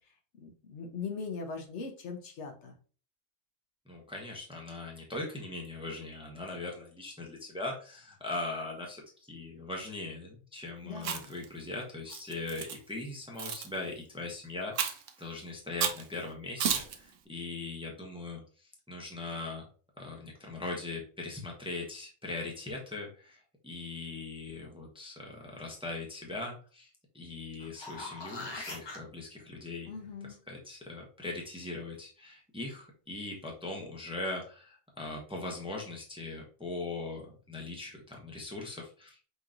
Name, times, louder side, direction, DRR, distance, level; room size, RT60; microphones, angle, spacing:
voice 1, 0.4-2.8 10.8-11.3 29.9-30.4, left 5 dB, 70° left, 3 dB, 1.2 m, -40 dB
voice 2, 3.9-9.0 9.3-19.7 20.0-26.9 27.1-30.0 30.2-39.2, left 2 dB, 5° right, -1 dB, 0.8 m, -40 dB
Chewing mastication, 11.0-11.4 12.1-12.8 13.4-13.7 14.8-15.1 15.8-16.0 16.6-17.0, right 7 dB, 85° right, 1.0 m, -32 dB
sound 1, 27.5-29.0 33.8-33.9, left 2 dB, 25° left, 0.7 m, -41 dB
5.6 x 3.0 x 2.5 m, 0.40 s
omnidirectional pair, 1.3 m